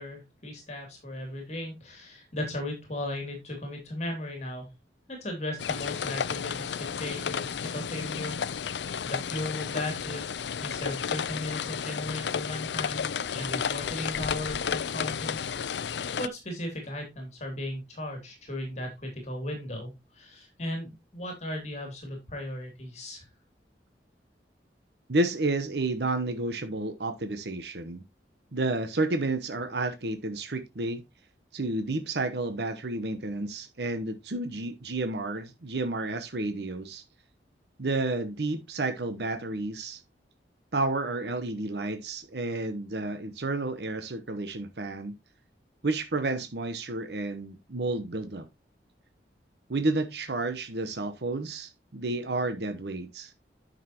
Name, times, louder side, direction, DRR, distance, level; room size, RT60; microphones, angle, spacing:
voice 1, 0.0-4.7 5.1-10.2 10.6-15.7 16.2-23.3, left 1 dB, 40° left, 2.8 m, -36 dB
sound 1, 5.6-16.3, left 7 dB, 80° left, 0.5 m, -32 dB
voice 2, 25.1-28.0 28.5-31.0 31.5-37.0 37.8-40.0 40.7-45.1 45.8-48.5 49.7-53.3, right 2 dB, 70° right, 1.0 m, -31 dB
9.6 x 6.6 x 2.9 m
head